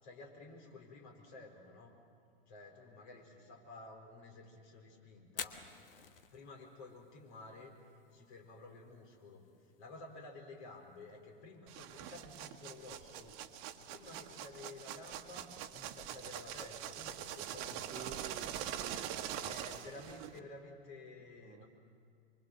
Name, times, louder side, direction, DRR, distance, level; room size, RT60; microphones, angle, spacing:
voice 1, 0.0-2.0 2.5-5.6 6.3-7.7 8.1-13.4 13.9-18.2 19.3-21.7, left 2 dB, 55° left, 4.6 m, -53 dB
Fire, 5.2-19.1, left 7 dB, 70° left, 1.4 m, -56 dB
sound 1, 11.7-20.4, right 10 dB, 45° right, 1.3 m, -44 dB
voice 2, 17.9-19.6 20.3-20.5 21.4-21.6, right 9 dB, 25° right, 1.0 m, -51 dB
24.5 x 24.0 x 7.7 m
figure-of-eight pair, 90°, 29 cm